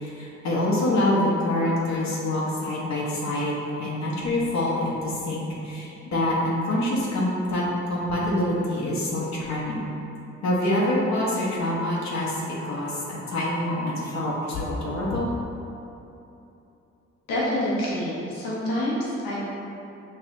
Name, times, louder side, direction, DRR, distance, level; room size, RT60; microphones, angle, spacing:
voice 1, 0.0-3.5 3.8-7.6 7.9-9.8 10.4-15.3, left 1 dB, 55° left, -6 dB, 0.9 m, -26 dB
voice 2, 17.3-19.5, left 1 dB, 80° left, -7 dB, 1.1 m, -27 dB
5.3 x 2.7 x 2.6 m, 2.9 s
hypercardioid pair, 45°, 33 cm